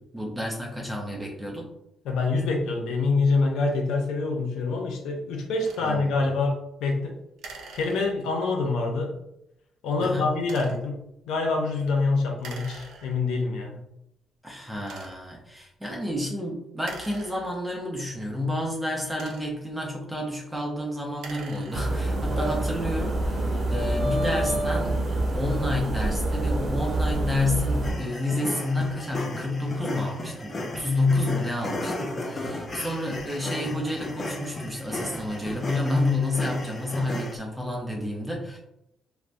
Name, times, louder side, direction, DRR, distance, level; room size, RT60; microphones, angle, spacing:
voice 1, 0.1-1.7 5.8-6.1 10.0-10.3 14.4-25.0 25.3-38.6, left 2 dB, 10° right, -2 dB, 0.6 m, -29 dB
voice 2, 2.0-7.1 7.7-9.1 9.8-11.0 11.3-13.8, left 3 dB, 85° left, 2 dB, 0.5 m, -26 dB
sound 1, 5.6-5.9 7.4-8.4 10.4-10.9 12.4-13.4 14.1-14.2 14.8-15.4 16.8-17.9 18.9-19.8 21.0-22.1, right 4 dB, 80° right, 0.4 m, -45 dB
sound 2, 21.7-27.9, right 1 dB, 50° right, 0.9 m, -26 dB
sound 3, 27.8-37.3, left 1 dB, 35° left, 0.5 m, -35 dB
3.3 x 2.0 x 2.5 m, 0.82 s
cardioid pair, 90°, 0 cm